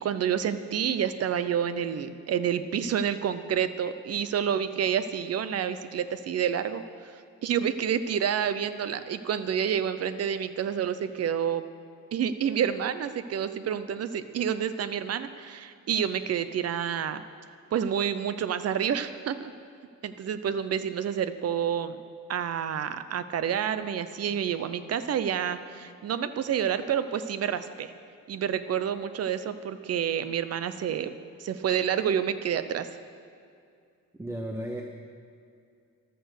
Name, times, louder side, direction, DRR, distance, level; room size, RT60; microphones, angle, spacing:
voice 1, 0.0-7.1 7.4-11.6 12.1-17.2 17.7-19.5 20.0-22.0 22.3-27.9 28.3-31.1 31.4-32.9, right 8 dB, 50° right, 12 dB, 0.7 m, -29 dB
voice 2, 34.2-34.8, right 1 dB, 10° right, 3 dB, 0.7 m, -34 dB
14.5 x 12.5 x 6.5 m, 2.4 s
wide cardioid pair, 175°, 33 cm